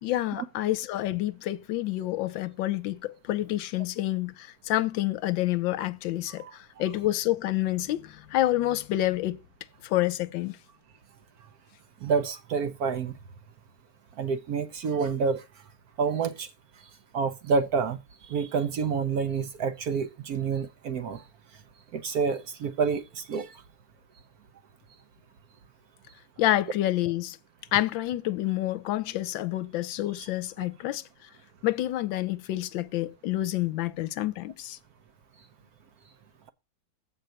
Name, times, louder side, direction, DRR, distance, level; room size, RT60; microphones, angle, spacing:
voice 1, 0.0-9.4 9.8-10.6 26.4-27.4 27.7-31.0 31.6-34.8, left 15 dB, 80° left, 1.3 m, -28 dB
voice 2, 12.0-13.1 14.2-15.4 16.0-16.5 17.1-18.0 18.3-21.2 21.9-23.5 30.2-30.3, right 5 dB, 65° right, 1.0 m, -28 dB
7.9 x 4.5 x 6.3 m
omnidirectional pair, 2.1 m